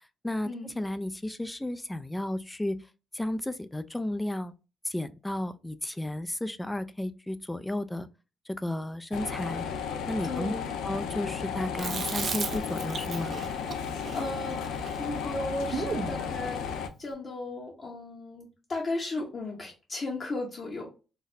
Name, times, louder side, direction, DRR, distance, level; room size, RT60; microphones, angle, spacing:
voice 1, 0.2-2.8 3.1-4.5 4.8-8.1 8.6-9.7 10.1-10.5 10.8-13.4, left 1 dB, 10° left, 0.3 m, -33 dB
sound 1, 9.1-16.9, left 7 dB, 80° left, 0.4 m, -34 dB
voice 2, 10.2-10.8 13.8-20.9, left 2 dB, 40° left, 0.9 m, -36 dB
Chewing mastication, 11.8-16.2, right 5 dB, 50° right, 0.5 m, -36 dB
4.0 x 2.0 x 2.6 m
cardioid pair, 90°, 0 cm